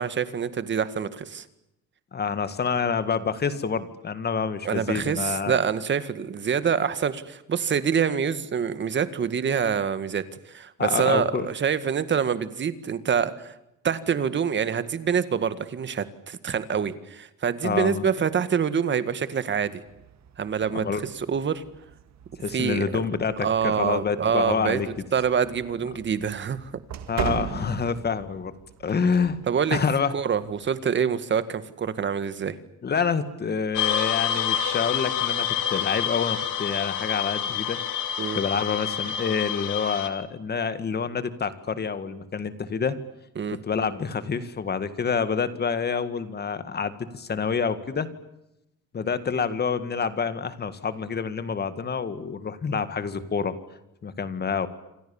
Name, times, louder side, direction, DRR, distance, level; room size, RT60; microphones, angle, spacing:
voice 1, 0.0-1.4 4.6-13.5 13.8-19.8 20.4-20.8 21.1-21.6 22.5-22.9 23.4-24.8 25.1-26.7 29.5-29.8 30.1-32.6 38.2-38.4 43.4-43.6, right 7 dB, 35° right, 13 dB, 1.9 m, -26 dB
voice 2, 2.1-5.6 10.8-11.5 17.6-18.1 20.7-21.0 22.4-24.9 27.1-28.6 28.8-29.4 29.7-30.1 32.8-37.8 38.4-43.0 43.6-48.1 48.9-53.6 54.0-54.7, left 6 dB, 30° left, 12 dB, 2.0 m, -27 dB
sound 1, 19.9-30.7, right 9 dB, 60° right, 2.2 m, -40 dB
sound 2, 33.7-40.1, left 9 dB, 80° left, 2.8 m, -28 dB
28.0 x 26.0 x 7.3 m, 0.87 s
cardioid pair, 165°, 31 cm